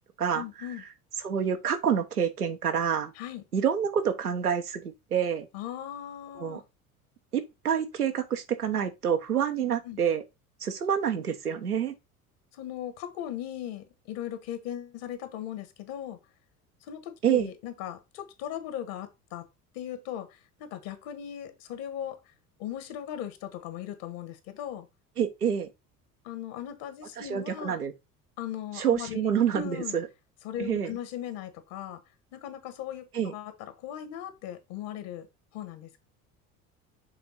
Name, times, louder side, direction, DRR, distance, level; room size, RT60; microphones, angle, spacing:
voice 1, 0.3-0.8 3.1-3.4 5.5-6.6 9.5-10.0 12.5-16.2 16.8-19.4 19.7-22.2 22.6-24.9 26.2-27.8 28.4-29.2 29.5-29.9 30.4-32.0 32.3-35.3 35.5-36.0, left 10 dB, 55° left, 1.5 m, -38 dB
voice 2, 1.2-3.1 3.5-5.5 6.4-6.6 7.3-10.2 10.6-11.9 17.2-17.5 25.2-25.7 27.2-27.9 28.8-30.1 30.6-30.9 33.1-33.3, right 8 dB, 85° right, 0.9 m, -27 dB
6.9 x 3.7 x 4.0 m
figure-of-eight pair, 65°, 44 cm